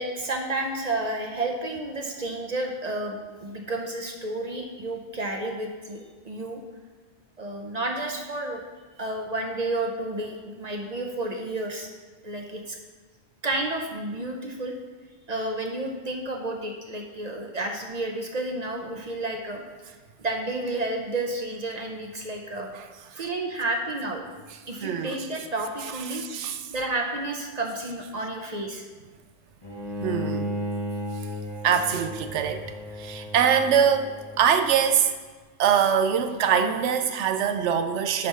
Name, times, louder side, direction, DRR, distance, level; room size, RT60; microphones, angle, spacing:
voice 1, 0.0-6.6 7.4-8.6 9.0-11.9 12.2-12.8 13.4-14.7 15.3-19.6 20.2-22.7 23.1-24.2 24.7-26.2 26.7-28.9, right 2 dB, 40° right, 2 dB, 0.7 m, -31 dB
voice 2, 22.7-23.2 24.8-25.3 26.1-26.6 30.0-30.5 31.6-32.7 33.0-35.1 35.6-38.3, right 8 dB, 75° right, 8 dB, 0.9 m, -23 dB
Bowed string instrument, 29.6-34.8, equal, 20° left, 1.1 m, -34 dB
7.8 x 3.5 x 5.4 m, 1.4 s
omnidirectional pair, 1.2 m